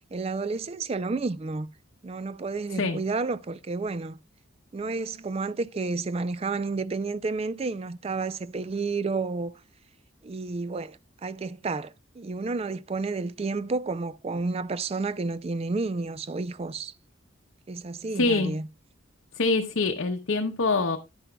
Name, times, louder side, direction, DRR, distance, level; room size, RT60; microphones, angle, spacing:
voice 1, 0.1-1.7 2.0-4.2 4.7-9.5 10.2-16.9 17.7-18.7, right 3 dB, 30° right, 0.4 m, -31 dB
voice 2, 18.2-18.5 19.4-21.0, left 3 dB, 75° left, 0.8 m, -25 dB
10.5 x 9.8 x 2.2 m
head